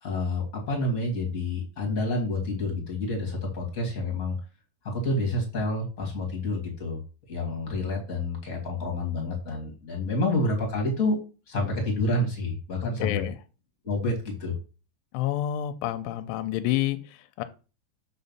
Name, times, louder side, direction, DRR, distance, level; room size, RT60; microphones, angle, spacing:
voice 1, 0.0-4.4 4.8-7.0 7.3-11.2 11.5-13.2 13.8-14.5, left 2 dB, 30° left, 1.9 m, -28 dB
voice 2, 13.0-13.4 15.1-17.4, left 13 dB, 80° left, 2.3 m, -28 dB
7.3 x 4.3 x 5.6 m
omnidirectional pair, 4.3 m